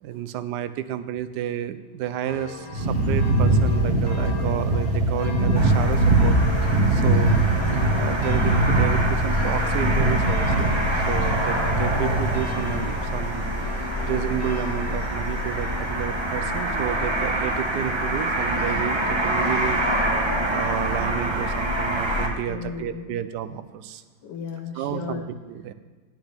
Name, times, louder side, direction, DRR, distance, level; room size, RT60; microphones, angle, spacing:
voice 1, 0.0-6.4 6.9-7.4 8.0-19.8 20.5-24.0 24.7-25.2 25.5-25.7, right 11 dB, 80° right, 12 dB, 1.2 m, -31 dB
sound 1, 2.3-16.1, left 5 dB, 20° left, 0.6 m, -40 dB
sound 2, 2.7-12.9, right 2 dB, 35° right, 1.5 m, -22 dB
sound 3, 5.5-22.3, right 1 dB, 20° right, 0.9 m, -26 dB
voice 2, 7.5-8.5 22.5-23.2 24.2-25.3, left 5 dB, 85° left, 3 dB, 1.5 m, -36 dB
10.5 x 8.7 x 3.4 m, 1.4 s
omnidirectional pair, 1.8 m